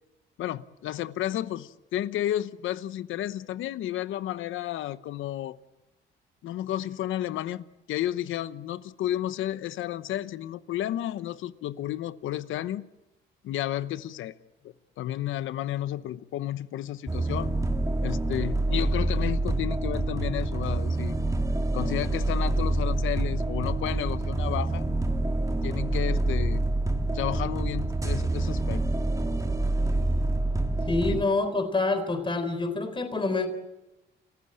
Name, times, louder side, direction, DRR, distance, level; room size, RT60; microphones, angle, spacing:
voice 1, 0.4-5.6 6.4-12.8 13.4-14.3 14.6-17.5 18.0-21.2 21.7-24.8 25.6-26.6 27.1-28.8 31.1-31.2, left 13 dB, 80° left, 0.9 m, -32 dB
sound 1, 17.1-31.2, right 2 dB, 15° right, 1.9 m, -27 dB
voice 2, 30.8-33.5, left 3 dB, 25° left, 3.9 m, -27 dB
30.0 x 15.5 x 8.9 m
cardioid pair, 90°, 20 cm